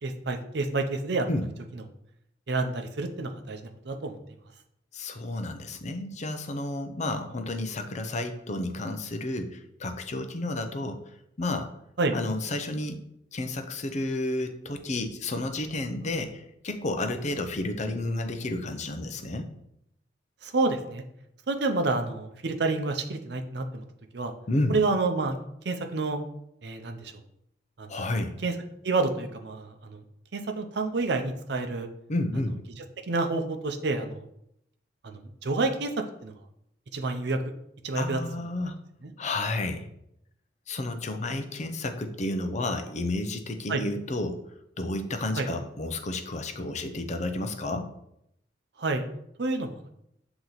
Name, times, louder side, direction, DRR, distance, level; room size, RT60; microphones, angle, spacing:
voice 1, 0.0-1.3 1.7-1.8 2.5-3.6 3.9-4.2 12.0-12.1 20.4-21.0 21.5-23.8 24.1-24.3 24.7-25.4 25.6-26.2 26.6-27.1 27.8-27.9 28.4-28.5 28.8-30.0 30.3-31.9 33.1-34.3 35.0-35.9 36.2-36.3 36.9-37.4 37.8-38.2 39.0-39.1 43.7-43.8 45.4-45.5 48.8-49.0 49.4-49.9, right 3 dB, 65° right, 5 dB, 0.6 m, -28 dB
voice 2, 4.9-11.0 11.4-11.7 12.1-13.0 13.3-19.5 24.5-24.8 27.9-28.4 32.1-32.6 38.0-38.8 39.2-39.9 40.7-44.4 44.8-47.9, left 2 dB, 40° left, 7 dB, 0.6 m, -31 dB
7.9 x 2.9 x 4.0 m, 0.78 s
head